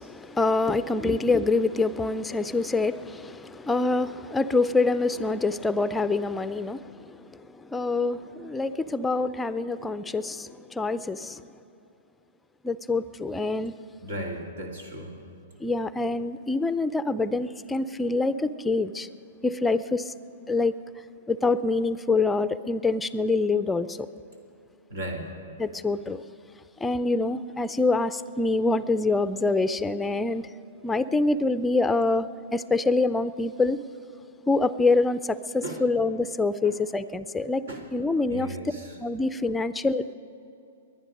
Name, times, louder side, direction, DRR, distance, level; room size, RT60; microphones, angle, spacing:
voice 1, 0.0-11.4 12.6-13.7 15.6-19.1 19.4-20.1 20.5-20.8 21.3-24.1 25.6-26.2 26.8-30.5 30.8-33.8 34.5-37.6 37.9-38.6 39.0-40.1, left 3 dB, 10° left, 14 dB, 0.5 m, -26 dB
voice 2, 14.0-15.2 24.9-25.3 35.6-35.8 36.6-36.8 37.7-37.8 38.3-38.9, right 1 dB, 75° right, 2 dB, 2.3 m, -35 dB
21.5 x 10.0 x 5.3 m, 2.7 s
hypercardioid pair, 120°, 0 cm